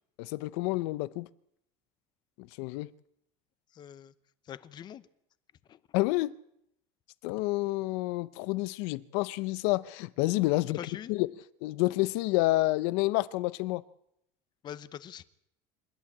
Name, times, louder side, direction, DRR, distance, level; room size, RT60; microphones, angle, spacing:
voice 1, 0.2-1.3 2.4-2.9 5.9-6.3 7.2-10.8 11.1-11.3 11.6-13.8, left 20 dB, 90° left, 0.8 m, -29 dB
voice 2, 3.7-4.1 4.5-5.1 5.7-5.8 10.7-11.1 14.6-15.2, left 10 dB, 35° left, 0.8 m, -43 dB
27.0 x 11.5 x 8.7 m
cardioid pair, 160°, 13 cm